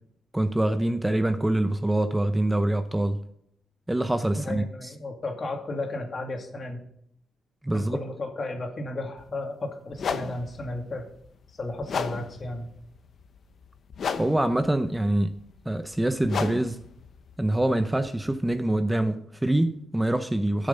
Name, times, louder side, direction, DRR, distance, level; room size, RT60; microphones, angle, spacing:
voice 1, 0.3-3.2 3.9-4.9 7.6-8.0 14.2-15.3 15.7-16.8 17.4-20.7, right 1 dB, 10° right, 0.6 m, -25 dB
voice 2, 4.3-6.8 7.7-11.1 11.5-12.7, left 2 dB, 40° left, 2.4 m, -34 dB
sound 1, 9.2-9.3 9.9-18.8, left 6 dB, 60° left, 0.9 m, -36 dB
12.0 x 6.9 x 5.4 m
cardioid pair, 100°, 0 cm